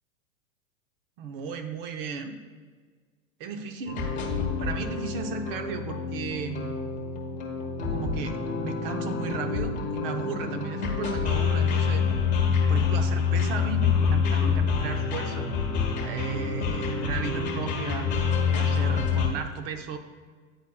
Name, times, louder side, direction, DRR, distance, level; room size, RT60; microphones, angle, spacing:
voice 1, 1.2-2.4 3.4-4.1 4.6-6.8 7.9-12.0 12.7-15.5 16.0-18.1 18.5-20.0, right 5 dB, 40° right, 7 dB, 0.6 m, -35 dB
sound 1, 3.9-19.3, left 5 dB, 15° left, 1.1 m, -27 dB
9.9 x 4.1 x 2.3 m, 1.5 s
hypercardioid pair, 125°, 44 cm